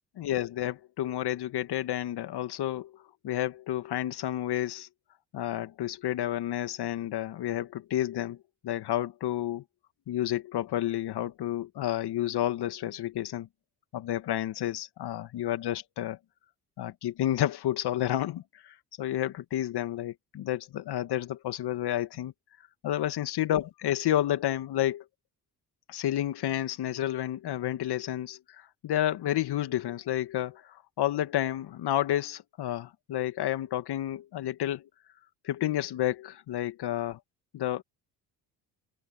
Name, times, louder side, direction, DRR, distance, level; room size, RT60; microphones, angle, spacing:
voice 1, 0.2-2.9 3.2-4.9 5.3-8.4 8.6-9.6 10.1-13.5 13.9-16.2 16.8-22.3 22.8-25.0 25.9-34.8 35.4-37.2 37.5-37.8, left 12 dB, 60° left, 2.1 m, -30 dB
open air
hypercardioid pair, 55°, 45 cm